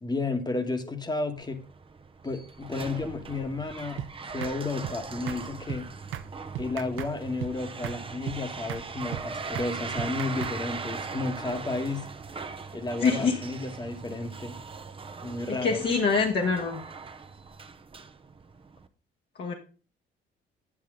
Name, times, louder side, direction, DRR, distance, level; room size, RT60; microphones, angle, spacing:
voice 1, 0.0-1.6 2.2-4.0 4.3-5.9 6.6-12.1 12.7-14.6 15.2-15.8, left 3 dB, 20° left, 7 dB, 1.3 m, -32 dB
sound 1, 1.4-18.9, right 4 dB, 25° right, 0.8 m, -40 dB
sound 2, 4.0-4.1 4.4-4.6 4.8-5.0 5.3-5.4 5.7-5.8 6.1-6.3 6.5-7.1 7.4-7.6 7.8-8.0 8.3-8.4 8.7-8.8 9.1-9.3 9.5-9.7 10.0-10.6, right 12 dB, 80° right, 0.6 m, -36 dB
voice 2, 13.0-13.4 15.6-16.8 19.4-19.5, left 5 dB, 55° left, 1 dB, 1.4 m, -25 dB
8.6 x 8.0 x 3.7 m, 0.37 s
cardioid pair, 90°, 20 cm